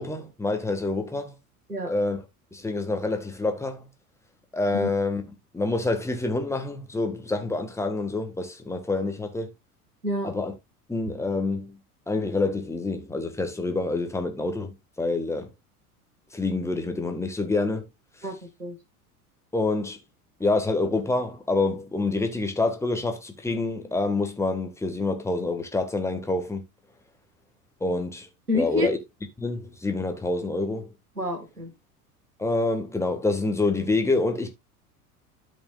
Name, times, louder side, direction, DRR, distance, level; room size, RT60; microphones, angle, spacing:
voice 1, 0.0-1.3 1.8-2.2 2.5-3.9 4.5-5.2 5.5-9.5 10.2-10.5 10.9-11.8 12.1-15.5 16.3-17.9 18.2-18.3 19.5-20.0 20.4-26.6 27.8-28.3 28.5-29.0 29.4-30.9 32.4-34.5, left 3 dB, 5° left, 1.6 m, -27 dB
voice 2, 18.2-18.8 28.5-29.0 31.2-31.7, left 1 dB, 90° right, 1.8 m, -28 dB
13.0 x 5.3 x 2.4 m
figure-of-eight pair, 80°, 45 cm